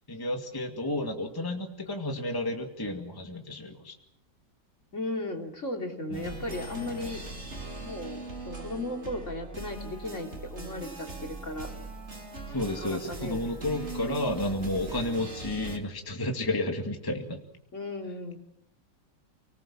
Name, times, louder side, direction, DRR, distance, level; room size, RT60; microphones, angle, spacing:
voice 1, 0.1-3.9 6.1-6.4 12.5-17.4, left 1 dB, 10° left, 3 dB, 2.2 m, -32 dB
voice 2, 4.9-7.2 7.8-11.7 12.7-13.4 17.7-18.4, left 2 dB, 40° left, 3 dB, 3.2 m, -36 dB
sound 1, 6.1-15.8, right 2 dB, 35° right, 3.4 m, -40 dB
30.0 x 19.5 x 7.4 m, 0.73 s
omnidirectional pair, 2.0 m